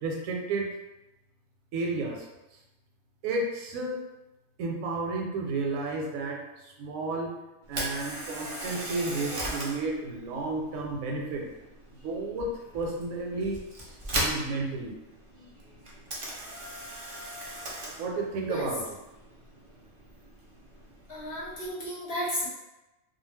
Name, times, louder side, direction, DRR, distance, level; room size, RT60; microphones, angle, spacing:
voice 1, 0.0-0.7 1.7-2.3 3.2-4.0 4.6-7.3 7.7-11.4 12.0-13.6 14.1-14.9 18.0-18.8, right 3 dB, 85° right, 0 dB, 1.0 m, -32 dB
Camera, 7.6-21.7, right 1 dB, 55° right, 0.3 m, -39 dB
voice 2, 21.1-22.5, equal, 55° left, -6 dB, 0.8 m, -33 dB
2.3 x 2.2 x 3.2 m, 1.0 s
omnidirectional pair, 1.4 m